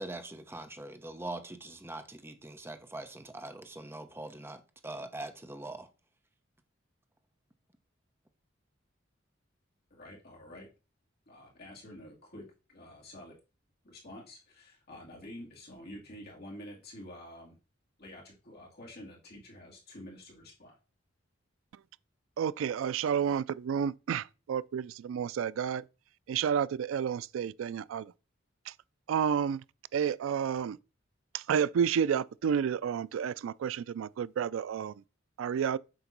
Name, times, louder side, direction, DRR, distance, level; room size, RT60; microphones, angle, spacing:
voice 1, 0.0-4.6 4.8-5.9, right 2 dB, 10° right, 0.8 m, -42 dB
voice 2, 9.9-10.7 11.3-13.4 13.8-17.6 18.0-20.8, left 1 dB, 55° left, 2.3 m, -48 dB
voice 3, 22.4-25.8 26.3-28.0 29.1-29.6 29.9-30.8 31.5-34.9 35.4-35.8, right 7 dB, 80° right, 0.3 m, -30 dB
7.8 x 2.9 x 5.9 m
head